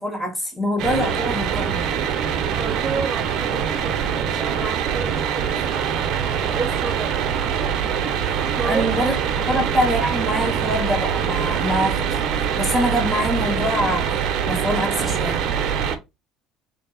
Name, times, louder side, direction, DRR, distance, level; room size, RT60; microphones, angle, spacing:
voice 1, 0.0-2.0 8.7-9.2 9.5-12.2 12.6-15.4, equal, 10° left, 1.4 m, -24 dB
sound 1, 0.8-16.0, right 8 dB, 55° right, 0.7 m, -24 dB
voice 2, 2.6-5.8 6.3-7.7 8.3-8.9 9.3-9.6, right 4 dB, 25° right, 0.9 m, -32 dB
3.2 x 2.6 x 4.1 m
cardioid pair, 130°, 0 cm